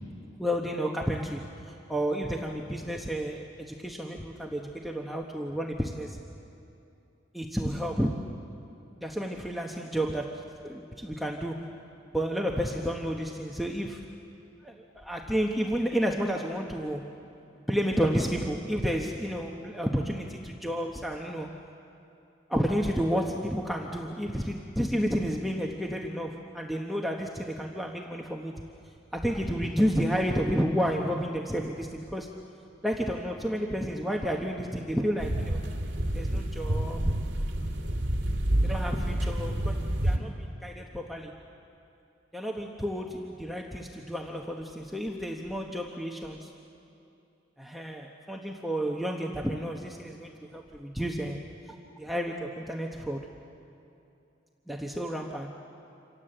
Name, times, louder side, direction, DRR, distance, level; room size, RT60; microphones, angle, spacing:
voice 1, 0.4-6.2 7.3-8.4 9.0-11.8 12.1-14.1 14.6-17.1 17.7-21.5 22.5-28.6 29.1-32.3 32.8-35.6 36.1-37.2 38.6-41.4 42.3-46.5 47.6-53.3 54.7-55.6, equal, ahead, 0 dB, 1.1 m, -31 dB
sound 1, 35.2-40.2, right 1 dB, 65° right, 2.7 m, -28 dB
27.5 x 26.5 x 7.9 m, 2.7 s
head